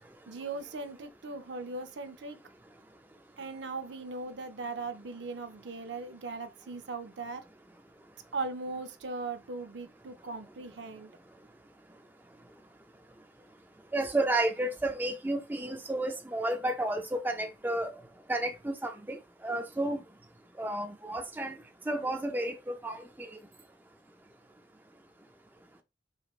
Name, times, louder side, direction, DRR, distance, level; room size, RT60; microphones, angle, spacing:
voice 1, 0.3-2.4 3.4-7.4 8.3-11.1, right 3 dB, 65° right, 0.6 m, -39 dB
voice 2, 13.9-17.9 18.3-19.2 19.4-20.0 20.6-21.6 21.9-23.3, right 1 dB, 10° right, 0.4 m, -31 dB
5.0 x 3.0 x 2.4 m
head